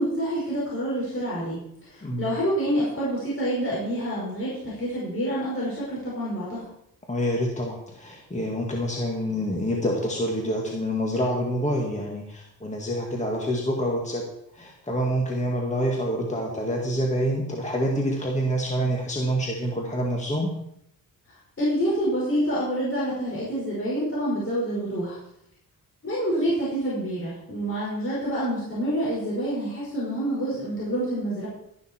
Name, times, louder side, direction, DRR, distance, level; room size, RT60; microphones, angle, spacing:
voice 1, 0.0-6.6 21.3-25.2 26.0-31.5, equal, 35° left, -7 dB, 5.0 m, -27 dB
voice 2, 7.1-14.2 14.5-20.5, equal, 20° left, 0 dB, 1.9 m, -27 dB
12.5 x 11.0 x 4.4 m, 0.75 s
wide cardioid pair, 125°, 36 cm